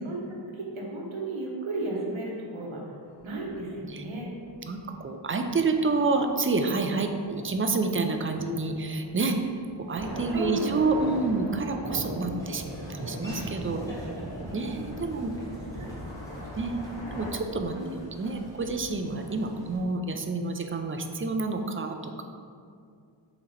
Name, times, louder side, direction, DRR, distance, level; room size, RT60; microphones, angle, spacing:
voice 1, 0.5-2.8 3.2-4.3 8.4-8.5 10.3-10.8 12.3-12.4 15.8-15.9 17.7-17.9, right 1 dB, 90° right, -2 dB, 0.9 m, -34 dB
sound 1, 3.0-17.3, left 1 dB, 75° left, 0.9 m, -50 dB
voice 2, 4.6-9.4 9.9-14.0 14.5-15.3 16.5-16.8 17.1-17.8 18.2-22.2, right 3 dB, 30° right, 5 dB, 0.4 m, -28 dB
Thunder, 9.8-16.1, equal, 60° right, 1.1 m, -38 dB
Laughter / Walk footsteps, 12.3-19.8, equal, 5° left, 1.2 m, -44 dB
3.8 x 2.9 x 4.1 m, 2.3 s
cardioid pair, 40°, 46 cm